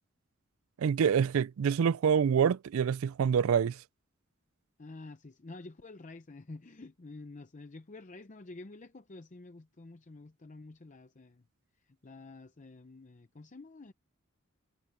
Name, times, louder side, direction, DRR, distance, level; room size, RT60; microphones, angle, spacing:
voice 1, 0.8-3.8, right 7 dB, 75° right, 0.4 m, -26 dB
voice 2, 4.8-11.4 11.8-13.9, left 2 dB, 35° left, 0.6 m, -49 dB
head